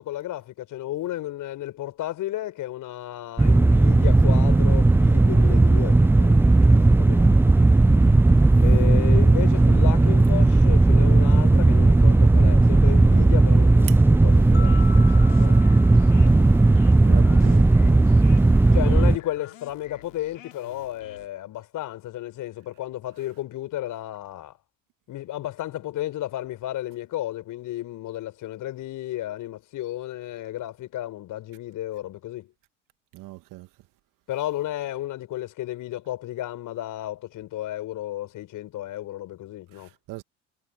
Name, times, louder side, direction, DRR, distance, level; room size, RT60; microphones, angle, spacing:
voice 1, 0.0-6.4 6.8-7.3 8.6-15.6 18.7-24.6 25.1-32.5 34.3-39.9, left 14 dB, 55° left, 5.5 m, -33 dB
sound 1, 3.4-19.2, right 2 dB, 5° right, 0.5 m, -16 dB
voice 2, 6.6-6.9 16.7-18.1 33.1-33.7 39.7-40.2, right 18 dB, 55° right, 2.0 m, -39 dB
sound 2, 14.2-21.3, left 11 dB, 85° left, 2.7 m, -49 dB
sound 3, 14.5-17.7, left 6 dB, 30° left, 4.0 m, -43 dB
hypercardioid pair, 65°, 38 cm